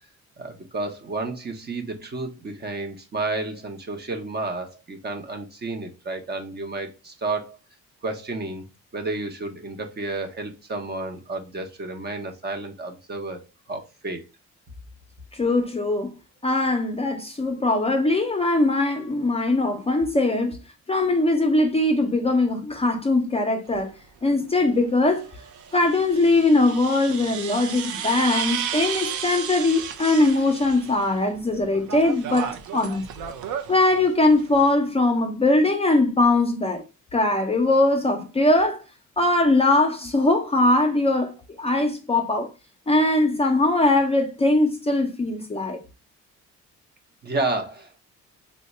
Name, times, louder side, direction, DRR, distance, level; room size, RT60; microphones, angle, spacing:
voice 1, 0.4-7.6 8.0-8.6 8.9-13.4 13.7-14.2 47.2-48.0, right 2 dB, 35° right, 0.7 m, -31 dB
voice 2, 15.4-16.1 16.4-20.6 20.9-23.9 24.2-25.2 25.7-33.0 33.7-36.8 37.1-38.8 39.2-42.5 42.9-45.8, left 2 dB, 20° left, 0.5 m, -21 dB
sound 1, 23.7-23.8 25.2-31.2 31.5-34.7, right 8 dB, 75° right, 0.5 m, -33 dB
2.8 x 2.2 x 4.0 m
cardioid pair, 90°, 30 cm